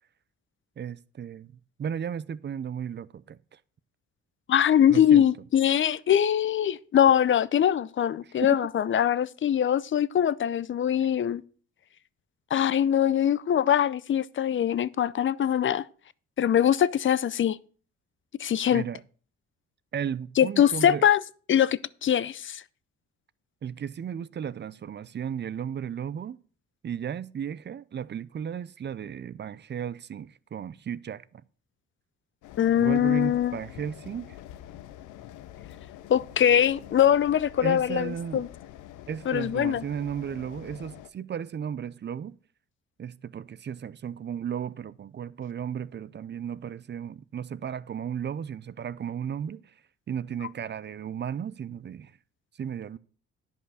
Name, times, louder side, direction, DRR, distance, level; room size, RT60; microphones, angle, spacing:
voice 1, 0.8-1.5 1.8-3.6 4.9-5.3 8.4-8.6 18.7-19.0 19.9-21.0 23.6-26.4 26.8-31.2 32.8-34.4 37.6-38.4 39.1-42.4 43.0-49.7 50.1-52.1 52.6-53.0, right 8 dB, 35° right, 0.5 m, -34 dB
voice 2, 4.5-11.4 12.5-15.8 16.4-17.6 18.4-18.8 20.4-21.2 21.5-22.6 32.6-33.6 36.1-38.5 39.3-39.8, left 9 dB, 40° left, 0.5 m, -22 dB
sound 1, 32.4-41.1, left 12 dB, 85° left, 0.7 m, -46 dB
11.0 x 5.6 x 6.4 m
cardioid pair, 90°, 30 cm